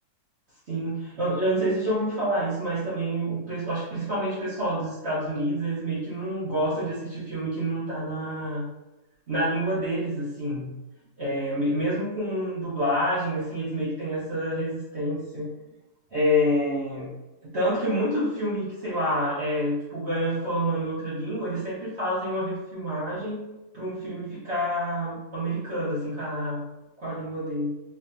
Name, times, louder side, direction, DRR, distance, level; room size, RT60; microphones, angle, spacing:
voice 1, 0.7-8.6 9.3-10.7 11.2-15.5 16.1-17.1 17.4-23.4 23.7-26.6 27.0-27.7, equal, 45° right, -10 dB, 1.3 m, -28 dB
4.1 x 2.7 x 2.7 m, 1.0 s
omnidirectional pair, 1.6 m